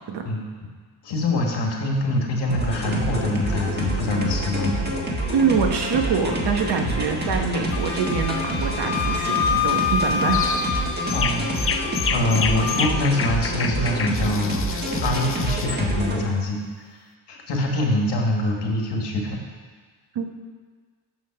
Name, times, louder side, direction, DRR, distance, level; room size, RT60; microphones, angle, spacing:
voice 1, 1.0-4.8 6.8-7.0 11.1-11.8 12.1-16.9 17.3-19.4, left 1 dB, 65° left, 1 dB, 1.7 m, -24 dB
sound 1, 2.5-16.2, right 1 dB, 20° right, 1.5 m, -27 dB
voice 2, 5.3-10.5 20.1-20.4, right 5 dB, 60° right, 4 dB, 1.2 m, -24 dB
Wind instrument woodwind instrument, 7.7-12.9, left 7 dB, 90° left, 0.7 m, -27 dB
sound 2, 10.3-10.7 11.1-15.8, left 6 dB, 30° left, 0.4 m, -29 dB
8.4 x 5.6 x 5.8 m, 1.5 s
cardioid pair, 110°, 45 cm